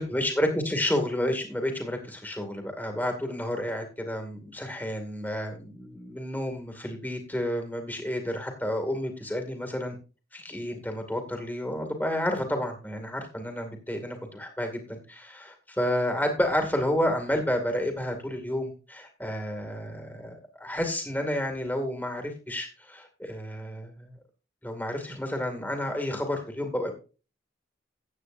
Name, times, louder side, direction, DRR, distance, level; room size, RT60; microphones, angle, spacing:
voice 1, 0.0-9.9 10.3-24.2 24.6-26.9, left 1 dB, 10° left, 4 dB, 2.2 m, -30 dB
15.0 x 8.9 x 2.6 m, 0.33 s
head